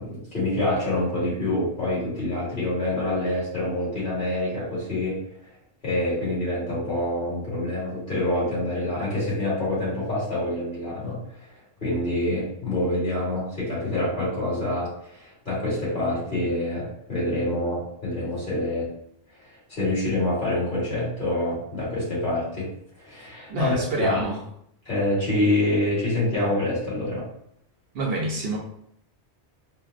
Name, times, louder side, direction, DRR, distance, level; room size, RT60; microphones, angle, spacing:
voice 1, 0.0-5.2 5.8-11.4 11.8-18.9 19.5-22.7 23.0-24.2 24.8-27.2, left 1 dB, 45° left, -7 dB, 1.7 m, -26 dB
voice 2, 23.5-24.4 27.9-28.6, right 2 dB, 65° right, -1 dB, 0.7 m, -27 dB
4.5 x 2.0 x 2.4 m, 0.71 s
omnidirectional pair, 1.2 m